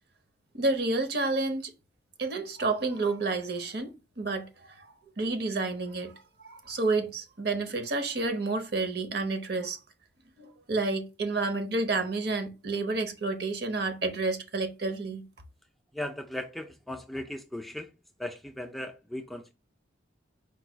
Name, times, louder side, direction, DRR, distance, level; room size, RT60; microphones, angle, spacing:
voice 1, 0.5-1.7 2.2-4.9 5.2-6.1 6.4-9.8 10.4-15.2, right 3 dB, 55° right, 0.8 m, -30 dB
voice 2, 15.9-17.9 18.2-19.5, left 1 dB, ahead, 0.3 m, -37 dB
4.6 x 2.3 x 4.5 m
head